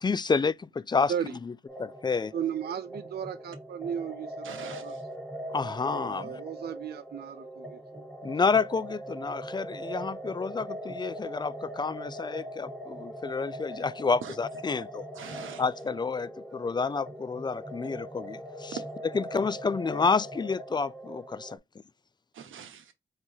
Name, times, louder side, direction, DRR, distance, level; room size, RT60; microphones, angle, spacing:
voice 1, 0.0-1.1 1.4-1.5 2.0-2.3 5.5-6.4 8.2-15.1 15.6-18.8 19.1-21.6, left 4 dB, 20° left, 0.3 m, -29 dB
sound 1, 1.7-21.6, right 1 dB, 5° left, 1.3 m, -41 dB
voice 2, 2.3-4.5 4.8-5.0 5.9-8.0, right 8 dB, 55° right, 0.4 m, -35 dB
voice 3, 4.4-5.0 14.2-14.3 15.1-15.6 18.7-18.8 22.3-22.9, right 7 dB, 80° right, 0.9 m, -42 dB
4.6 x 3.0 x 2.7 m
cardioid pair, 50°, 20 cm